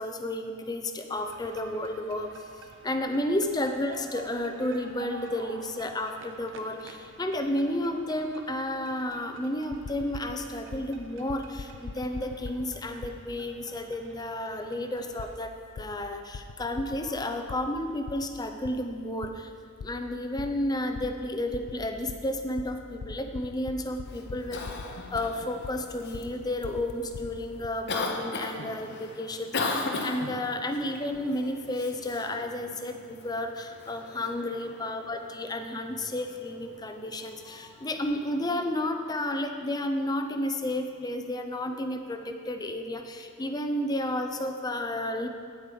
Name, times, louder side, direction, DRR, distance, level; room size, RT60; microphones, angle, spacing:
voice 1, 0.0-2.3 2.8-19.5 19.8-24.6 25.1-45.3, left 1 dB, 20° left, 6 dB, 0.6 m, -32 dB
sound 1, 1.1-15.4, right 3 dB, 60° right, 0.8 m, -49 dB
sound 2, 9.7-10.9 11.3-13.2 15.2-15.3 15.8-17.6 18.1-18.7 19.2-19.3 19.8-19.9 20.4-20.6 20.9-21.2 21.5-22.2 22.6-25.2 25.6-27.7, left 4 dB, 90° left, 0.5 m, -41 dB
Cough, 24.0-38.5, left 3 dB, 50° left, 0.9 m, -39 dB
9.3 x 8.3 x 5.2 m, 2.4 s
head